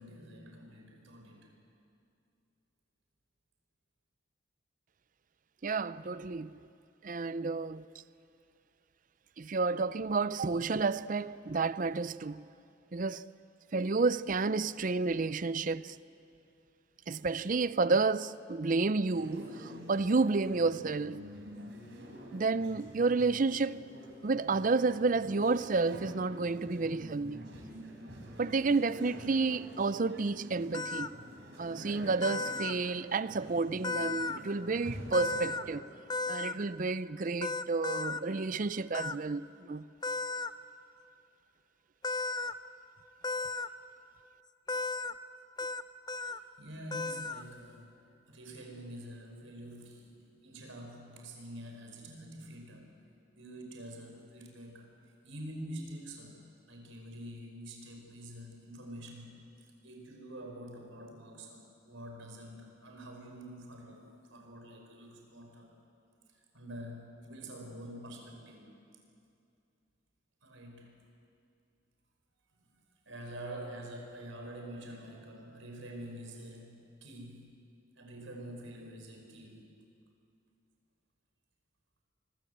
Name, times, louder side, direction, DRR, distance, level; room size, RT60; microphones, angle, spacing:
voice 1, 0.0-1.5 46.1-47.9 48.3-52.9 53.3-54.9 55.2-56.4 56.7-59.4 59.8-65.7 66.5-68.8 70.4-70.9 72.6-72.7 73.0-77.5 77.9-79.6, right 1 dB, 90° right, 5.2 m, -46 dB
voice 2, 5.6-6.6 7.0-7.9 9.4-12.5 12.9-13.3 13.7-16.0 17.1-21.3 22.3-23.9 24.2-27.5 28.4-31.2 31.6-35.8 36.3-39.9, right 3 dB, 45° right, 0.5 m, -31 dB
sound 1, 19.1-35.7, equal, 65° right, 4.1 m, -47 dB
sound 2, 30.7-31.1 32.2-32.7 33.8-34.4 35.1-35.6 36.1-36.5 37.4-38.2 38.9-39.1 40.0-40.5 42.0-42.5 43.2-43.7 44.7-45.1 45.6-45.8 46.1-46.4 46.9-47.4, left 3 dB, 20° left, 0.5 m, -34 dB
25.0 x 23.0 x 8.1 m
head